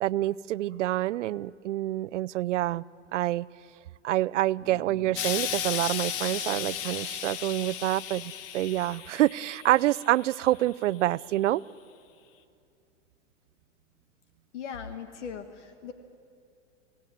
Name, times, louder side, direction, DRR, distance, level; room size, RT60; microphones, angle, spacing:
voice 1, 0.0-2.8 3.1-3.5 4.0-11.6, right 15 dB, 85° right, 20 dB, 0.6 m, -27 dB
Bass guitar, 4.6-8.7, equal, 15° left, 2.4 m, -53 dB
Explosion, 5.2-10.5 11.3-11.4, left 10 dB, 50° left, 1.1 m, -35 dB
voice 2, 14.5-15.9, left 7 dB, 75° left, 9 dB, 1.7 m, -39 dB
25.5 x 18.0 x 9.3 m, 2.5 s
supercardioid pair, 145°, 36 cm